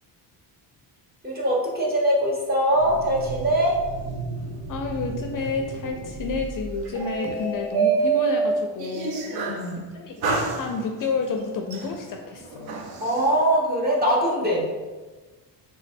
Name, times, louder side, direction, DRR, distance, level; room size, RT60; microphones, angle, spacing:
voice 1, 1.2-3.8 9.3-9.9 13.0-14.6, equal, 20° right, -4 dB, 1.0 m, -22 dB
sound 1, 2.7-9.7 10.2-11.2 11.7-13.3, right 5 dB, 60° right, 0.7 m, -29 dB
voice 2, 4.7-9.2 9.9-12.7, left 4 dB, 50° left, 3 dB, 0.5 m, -30 dB
3.6 x 3.0 x 4.2 m, 1.3 s
cardioid pair, 140°, 43 cm